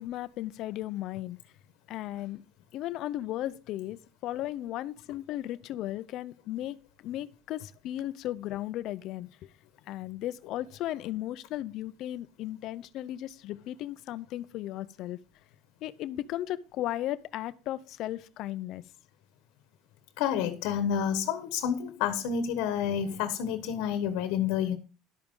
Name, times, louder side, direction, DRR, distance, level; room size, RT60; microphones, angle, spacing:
voice 1, 0.0-1.4 1.9-2.4 2.7-9.5 9.9-15.2 15.8-18.8, left 14 dB, 60° left, 0.6 m, -36 dB
voice 2, 20.2-24.8, left 8 dB, 80° left, 1.2 m, -29 dB
11.5 x 8.8 x 3.8 m
cardioid pair, 130°, 0 cm